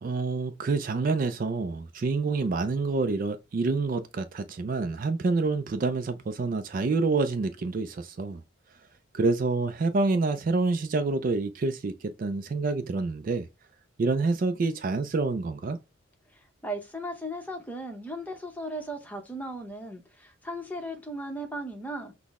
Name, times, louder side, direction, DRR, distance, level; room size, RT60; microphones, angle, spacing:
voice 1, 0.0-8.4 9.1-13.5 14.0-15.8, right 3 dB, 40° right, 0.3 m, -27 dB
voice 2, 16.3-22.1, right 1 dB, 10° left, 0.7 m, -37 dB
5.9 x 2.1 x 3.5 m
head